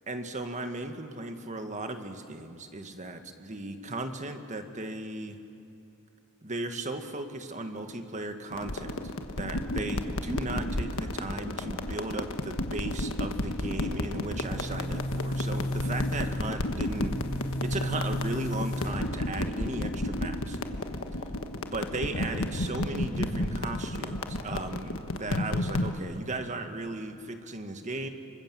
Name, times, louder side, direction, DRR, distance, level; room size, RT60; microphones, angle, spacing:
voice 1, 0.1-5.4 6.4-9.0 9.3-20.6 21.7-28.1, right 2 dB, 35° right, 7 dB, 1.6 m, -36 dB
sound 1, 8.5-26.0, left 1 dB, 65° left, 1.4 m, -32 dB
Boom, 14.0-19.9, left 1 dB, 40° left, 5.3 m, -34 dB
26.5 x 24.0 x 7.6 m, 2.6 s
head